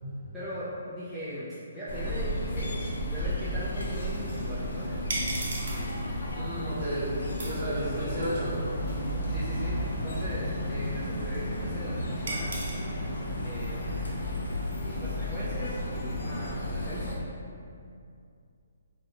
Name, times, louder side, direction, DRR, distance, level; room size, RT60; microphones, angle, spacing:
voice 1, 0.3-5.1 5.7-6.1 7.8-8.3 9.3-12.7 13.4-14.1 14.8-17.2, equal, ahead, -15 dB, 0.3 m, -39 dB
sound 1, 1.9-17.2, left 1 dB, 85° left, 0.5 m, -33 dB
sound 2, 4.3-12.8, right 2 dB, 60° right, 0.6 m, -41 dB
voice 2, 6.3-8.6, right 1 dB, 35° right, -9 dB, 0.9 m, -33 dB
2.4 x 2.1 x 2.8 m, 2.4 s
hypercardioid pair, 165°, 0 cm